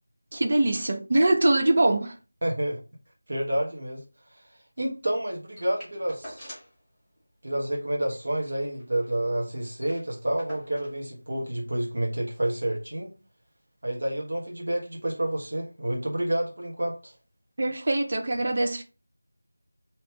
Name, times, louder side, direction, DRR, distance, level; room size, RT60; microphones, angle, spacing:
voice 1, 0.3-2.1 17.6-18.8, right 2 dB, 35° right, 0.4 m, -23 dB
voice 2, 2.4-2.8 3.3-4.0 4.3-4.5 4.8-6.5 7.4-13.1 13.8-17.1, right 1 dB, 55° right, 1.3 m, -29 dB
sound 1, 5.5-6.8 7.2-7.3 7.5-7.7 8.1-9.2 9.5-9.6 9.8-11.0 11.9-12.0, equal, ahead, 1.0 m, -46 dB
2.9 x 2.9 x 3.3 m
figure-of-eight pair, 175°, 0 cm